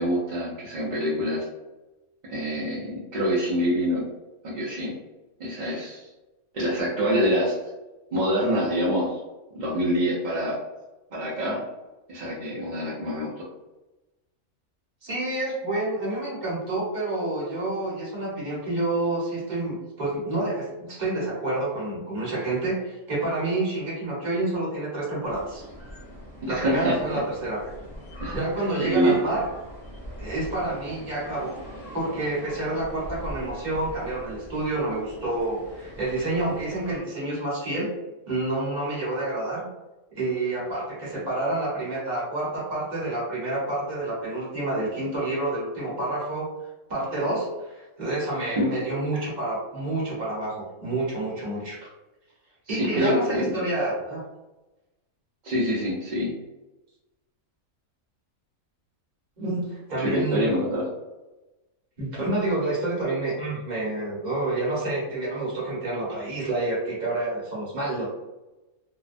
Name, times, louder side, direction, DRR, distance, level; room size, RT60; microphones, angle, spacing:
voice 1, 0.0-1.5 2.2-4.0 4.4-4.9 5.4-6.1 6.5-7.6 8.1-9.2 9.5-10.6 11.1-11.6 12.1-13.4 26.5-27.0 28.2-28.4 28.8-29.2 48.6-48.7 52.7-53.5 55.4-56.3 60.0-60.9, equal, 55° right, -7 dB, 0.5 m, -25 dB
voice 2, 15.0-25.6 26.5-27.6 28.3-29.5 30.2-31.6 31.9-37.9 38.3-39.7 40.1-46.5 46.9-51.9 52.7-54.2 59.4-60.5 62.0-68.1, right 2 dB, 35° right, -6 dB, 0.8 m, -28 dB
sound 1, 25.2-37.0, equal, 10° left, 0.7 m, -42 dB
2.7 x 2.1 x 2.4 m, 1.1 s
omnidirectional pair, 1.5 m